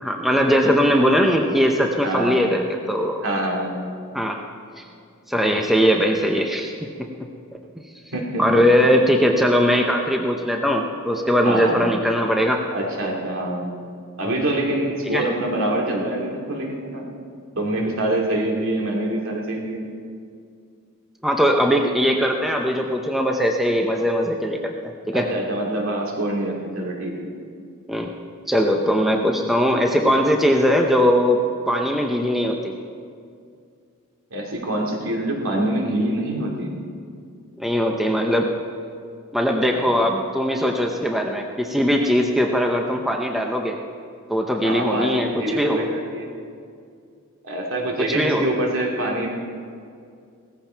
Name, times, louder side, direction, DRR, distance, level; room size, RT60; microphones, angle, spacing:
voice 1, 0.0-3.2 4.1-4.4 4.8-4.9 5.3-7.1 8.4-12.6 15.0-15.3 21.2-25.3 27.9-28.1 28.5-31.4 31.7-32.7 37.6-38.5 39.3-43.8 44.3-45.8 48.1-48.5, equal, ahead, 1 dB, 0.7 m, -20 dB
voice 2, 2.0-2.5 3.2-3.8 8.1-8.6 11.4-11.8 12.7-13.7 14.2-17.1 17.5-19.9 25.1-27.2 30.0-30.1 34.3-36.7 39.7-40.1 44.6-46.3 47.4-49.3, right 1 dB, 65° right, -1 dB, 2.7 m, -25 dB
17.5 x 14.5 x 4.6 m, 2.3 s
head